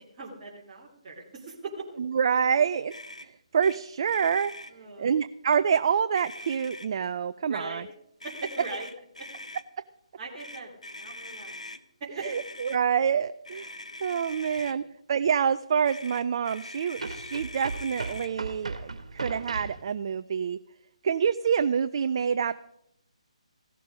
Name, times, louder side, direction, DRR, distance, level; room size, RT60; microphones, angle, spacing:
voice 1, 0.2-2.1 4.7-5.1 7.5-7.9 8.2-8.9 10.2-10.7 11.0-11.6 12.0-12.3 14.4-14.5 14.8-14.9, right 3 dB, 30° right, -5 dB, 2.8 m, -40 dB
voice 2, 2.0-2.9 3.2-4.5 5.0-7.8 12.2-20.6 21.0-22.5, right 7 dB, 45° right, 13 dB, 0.4 m, -27 dB
Motor vehicle (road), 2.9-3.3 3.6-3.8 4.0-4.7 5.5-5.8 6.1-7.0 8.2-9.6 10.4-11.8 12.2-12.8 13.4-14.8 15.8-18.3, left 1 dB, 85° left, 1.0 m, -43 dB
sound 1, 14.6-14.7 17.0-19.8, right 3 dB, 70° right, 2.2 m, -37 dB
16.0 x 12.0 x 5.0 m, 0.76 s
figure-of-eight pair, 145°, 4 cm